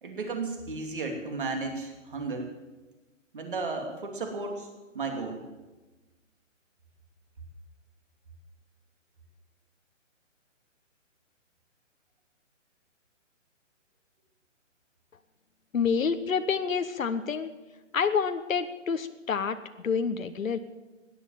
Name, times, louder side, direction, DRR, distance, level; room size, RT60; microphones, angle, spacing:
voice 1, 0.0-2.5 3.3-4.7 4.9-5.4, right 3 dB, 40° right, 3 dB, 3.0 m, -34 dB
voice 2, 15.7-17.5 17.9-19.6 19.8-20.6, left 6 dB, 90° left, 9 dB, 1.2 m, -28 dB
17.5 x 11.0 x 7.6 m, 1.2 s
hypercardioid pair, 180°, 39 cm